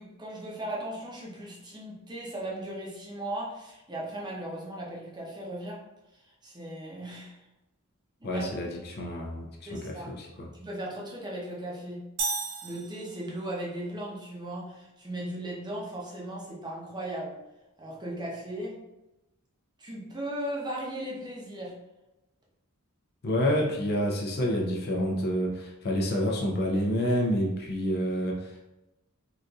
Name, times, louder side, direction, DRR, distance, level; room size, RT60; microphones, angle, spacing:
voice 1, 0.0-5.8 6.4-7.4 8.2-8.4 9.7-10.1 10.5-12.0 12.6-17.4 17.8-18.8 19.8-21.7, right 1 dB, 20° right, -4 dB, 0.7 m, -37 dB
voice 2, 8.2-10.5 23.2-28.6, equal, 45° left, 0 dB, 0.5 m, -28 dB
sound 1, 12.2-13.6, right 3 dB, 55° right, 0.8 m, -34 dB
3.9 x 2.6 x 2.3 m, 0.97 s
head